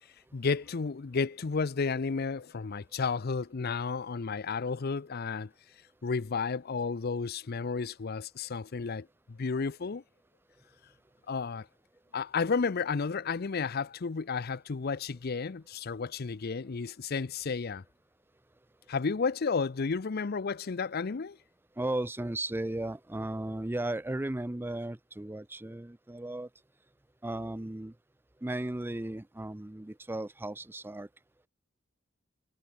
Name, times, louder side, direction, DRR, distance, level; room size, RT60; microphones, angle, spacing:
voice 1, 0.3-5.5 6.0-10.0 11.3-11.7 12.1-17.8 18.9-21.4, left 5 dB, 50° left, 0.6 m, -32 dB
voice 2, 21.8-26.5 27.2-27.9 28.4-31.1, right 1 dB, 10° right, 0.5 m, -35 dB
head